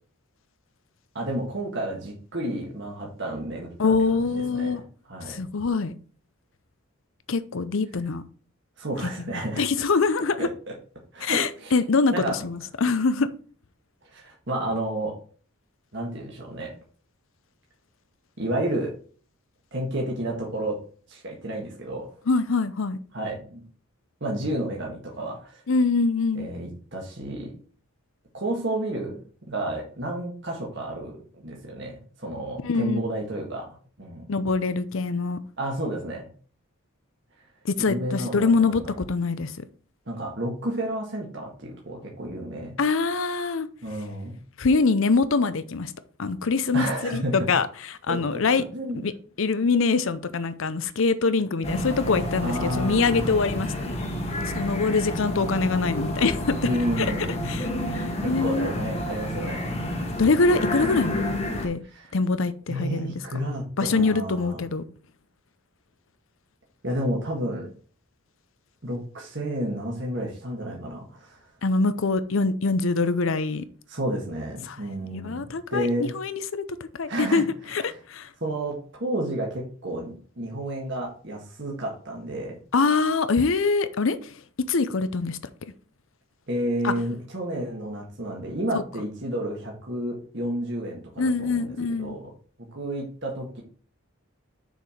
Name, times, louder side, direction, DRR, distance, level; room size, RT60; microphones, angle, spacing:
voice 1, 1.1-3.7 4.2-4.8 5.1-5.4 8.8-9.7 10.4-10.7 11.1-11.7 12.1-12.4 14.1-15.2 15.9-16.7 18.4-18.9 19.7-20.8 21.1-22.1 23.1-23.6 24.2-25.6 26.3-27.5 28.3-29.2 29.5-34.3 35.6-36.3 37.8-38.8 40.1-42.7 43.8-44.4 46.7-47.5 48.1-48.4 48.7-49.1 52.4-53.4 54.6-54.7 56.6-57.5 58.2-59.8 61.9-62.1 62.7-64.6 66.8-67.7 68.8-71.4 73.9-76.1 77.1-77.4 78.4-82.6 86.5-92.3 92.7-93.6, right 1 dB, 55° right, 1.7 m, -31 dB
voice 2, 3.8-4.8 5.3-5.9 7.3-8.2 9.5-10.5 11.2-13.3 22.3-23.0 25.7-26.5 32.6-33.0 34.3-35.4 37.6-39.6 42.8-43.7 44.6-45.9 46.2-48.6 49.0-49.1 49.4-53.9 54.5-56.6 57.0-57.1 57.5-58.7 60.2-61.2 61.6-61.8 62.1-63.1 63.8-64.8 71.6-73.6 74.7-74.8 75.1-76.6 77.0-78.3 82.7-84.3 84.7-85.4 86.8-86.9 88.7-88.8 91.2-92.2, left 4 dB, 65° left, 0.6 m, -24 dB
sound 1, 51.6-61.7, left 1 dB, 30° left, 1.2 m, -30 dB
6.6 x 4.7 x 5.0 m
head